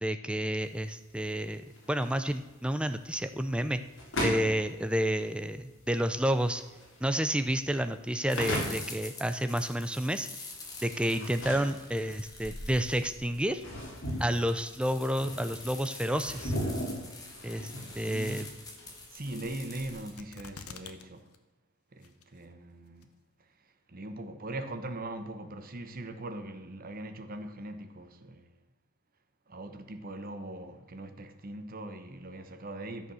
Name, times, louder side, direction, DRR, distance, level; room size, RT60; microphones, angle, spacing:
voice 1, 0.0-3.8 4.2-6.6 7.0-10.3 10.8-13.6 14.2-16.5 17.4-18.5, equal, 5° right, 0.4 m, -30 dB
sound 1, 0.6-19.8, equal, 60° left, 3.3 m, -39 dB
sound 2, 8.3-20.1, left 2 dB, 15° left, 1.9 m, -46 dB
voice 2, 18.1-18.5 19.1-21.3 21.9-23.1 23.9-28.5 29.5-33.1, right 1 dB, 40° right, 1.0 m, -41 dB
sound 3, 20.2-21.0 21.3-21.4 22.0-22.5 23.0-23.1, left 6 dB, 90° left, 1.0 m, -46 dB
13.0 x 6.9 x 6.3 m
head